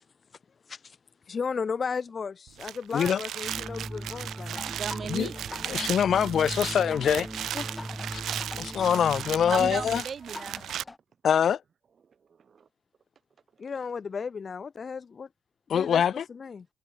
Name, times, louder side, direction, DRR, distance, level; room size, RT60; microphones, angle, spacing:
voice 1, 1.3-4.6 7.5-7.7 13.6-15.3 15.7-16.0 16.3-16.7, left 5 dB, 40° left, 0.8 m, -34 dB
sound 1, 2.5-10.8, right 11 dB, 70° right, 1.1 m, -36 dB
sound 2, 3.4-10.0, right 1 dB, 5° right, 1.9 m, -39 dB
sound 3, 4.5-11.0, left 3 dB, 20° left, 2.2 m, -46 dB
voice 2, 4.7-5.7 9.5-10.6 12.5-12.6, right 6 dB, 45° right, 2.6 m, -36 dB
voice 3, 5.7-7.3 8.1-8.2 8.6-10.0 11.2-11.6 15.7-16.2, left 8 dB, 60° left, 1.2 m, -24 dB
cardioid pair, 90°, 0 cm